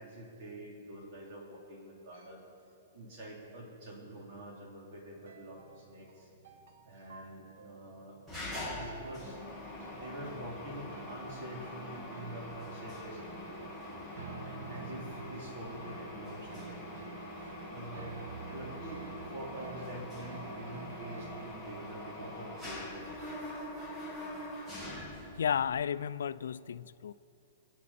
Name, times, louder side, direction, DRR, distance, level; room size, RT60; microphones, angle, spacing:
voice 1, 0.0-2.4 2.9-6.3 6.9-8.2 8.7-9.4 9.9-13.7 14.4-16.9 17.7-18.1 18.5-19.1 19.3-23.3, right 1 dB, 40° right, -2 dB, 3.0 m, -46 dB
sound 1, 5.2-21.5, right 6 dB, 70° right, 0.9 m, -50 dB
Mechanisms, 8.3-25.7, left 1 dB, 5° right, 1.7 m, -44 dB
voice 2, 25.4-27.1, left 8 dB, 85° left, 16 dB, 0.4 m, -33 dB
25.0 x 8.5 x 4.2 m, 2.8 s
hypercardioid pair, 170°, 0 cm